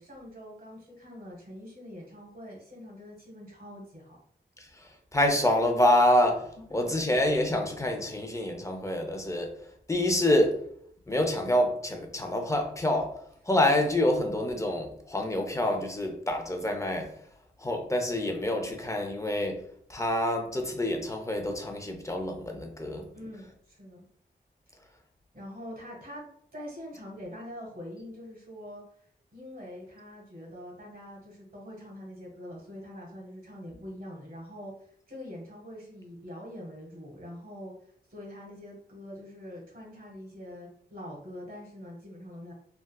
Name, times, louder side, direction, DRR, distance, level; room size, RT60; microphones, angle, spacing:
voice 1, 0.0-4.2 6.7-6.8 23.1-24.0 25.3-28.8 29.3-37.7 38.1-42.5, equal, 55° right, -1 dB, 1.2 m, -44 dB
voice 2, 4.6-9.5 9.9-10.6 11.1-13.2 13.4-17.1 17.6-19.6 19.9-23.1, left 1 dB, 15° left, 3 dB, 0.5 m, -27 dB
3.5 x 2.3 x 2.2 m, 0.64 s
wide cardioid pair, 75°, 18 cm